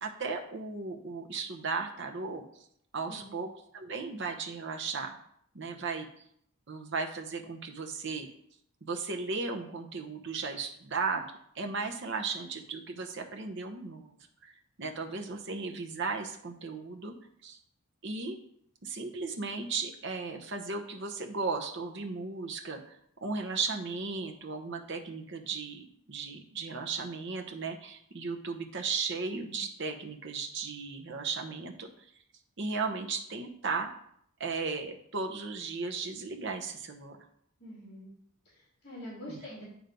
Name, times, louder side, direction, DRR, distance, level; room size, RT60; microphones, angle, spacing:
voice 1, 0.0-2.4 2.9-3.5 3.7-5.2 5.5-6.3 6.7-8.3 8.8-11.2 11.5-14.1 14.4-14.5 14.8-17.1 17.4-17.6 18.0-18.4 18.8-31.9 32.6-33.9 34.4-37.2 39.3-39.4, right 4 dB, 55° right, 3 dB, 0.9 m, -36 dB
voice 2, 3.1-3.5 37.6-38.1 38.4-39.6, left 1 dB, 50° left, -7 dB, 2.5 m, -45 dB
9.1 x 3.1 x 5.2 m, 0.70 s
head